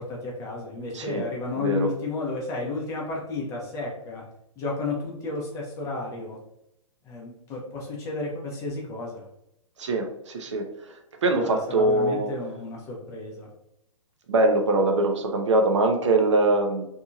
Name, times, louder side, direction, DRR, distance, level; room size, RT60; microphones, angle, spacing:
voice 1, 0.0-4.2 4.6-6.4 7.1-9.2 11.4-13.5, left 3 dB, 15° left, -2 dB, 0.6 m, -32 dB
voice 2, 1.6-1.9 9.8-10.7 11.2-12.3 14.3-16.9, right 2 dB, 55° right, 4 dB, 0.5 m, -22 dB
2.8 x 2.6 x 2.4 m, 0.79 s
figure-of-eight pair, 120°, 18 cm